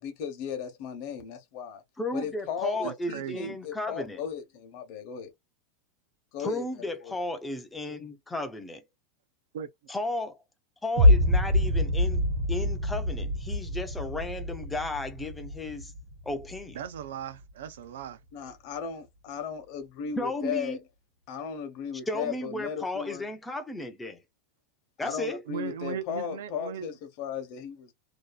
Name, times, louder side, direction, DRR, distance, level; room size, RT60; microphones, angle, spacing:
voice 1, 0.0-1.8 2.1-5.3 6.3-7.1 18.3-20.8 21.3-23.2 25.0-27.9, left 7 dB, 45° left, 0.8 m, -36 dB
voice 2, 2.0-4.2 6.4-8.8 9.9-10.4 10.8-15.9 16.3-16.8 20.2-20.8 22.1-24.2 25.0-25.4, left 1 dB, 5° left, 0.4 m, -34 dB
voice 3, 2.8-3.6 9.5-9.7 16.7-18.2 25.5-27.0, right 8 dB, 90° right, 0.5 m, -38 dB
sound 1, 11.0-17.0, left 1 dB, 65° right, 1.1 m, -25 dB
2.6 x 2.3 x 2.2 m
supercardioid pair, 170°, 0 cm